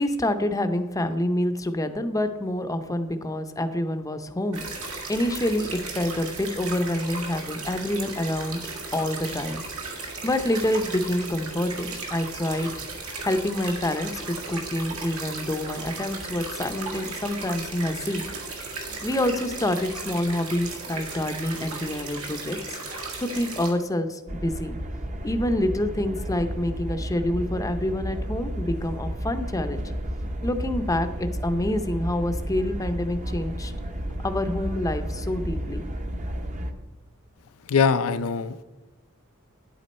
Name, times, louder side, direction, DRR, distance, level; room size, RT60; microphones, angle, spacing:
voice 1, 0.0-4.6 5.1-8.6 8.9-9.6 9.9-12.9 13.2-18.3 18.8-22.6 22.9-24.8 25.2-29.8 30.4-33.7 34.2-35.8, left 1 dB, 15° left, 8 dB, 0.6 m, -27 dB
sound 1, 4.5-23.7, right 3 dB, 80° right, 1.9 m, -36 dB
sound 2, 24.3-36.7, equal, 35° right, 0.8 m, -32 dB
voice 2, 37.7-38.6, left 5 dB, 80° left, 11 dB, 0.5 m, -22 dB
10.0 x 8.4 x 4.3 m, 1.1 s
head